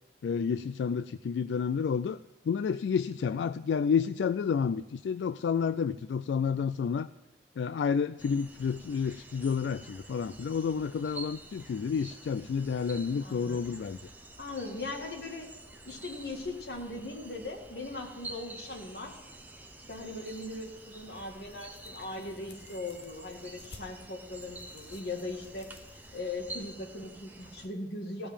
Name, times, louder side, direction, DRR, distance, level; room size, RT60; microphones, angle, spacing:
voice 1, 0.2-2.2 2.5-7.1 7.6-14.0, left 6 dB, 85° left, 13 dB, 0.3 m, -30 dB
sound 1, 8.2-27.7, right 2 dB, 10° right, 0.8 m, -49 dB
voice 2, 13.2-13.6 14.4-15.5 15.9-19.2 19.9-28.3, left 2 dB, 65° left, 2 dB, 2.0 m, -39 dB
sound 2, 19.8-26.2, left 3 dB, 35° left, 0.8 m, -56 dB
15.5 x 5.3 x 8.6 m, 1.1 s
head